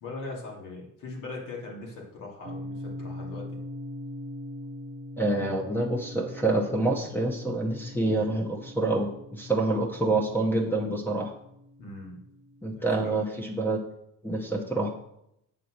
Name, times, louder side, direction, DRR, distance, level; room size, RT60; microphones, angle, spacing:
voice 1, 0.0-3.5 11.8-12.2 12.7-13.3, left 3 dB, 75° left, -2 dB, 2.7 m, -40 dB
sound 1, 2.4-12.6, left 1 dB, 35° right, 0.9 m, -42 dB
voice 2, 5.2-11.3 12.6-13.8 14.2-14.9, right 2 dB, 5° left, 1 dB, 0.8 m, -27 dB
7.5 x 4.1 x 6.4 m, 0.78 s
cardioid pair, 170°, 32 cm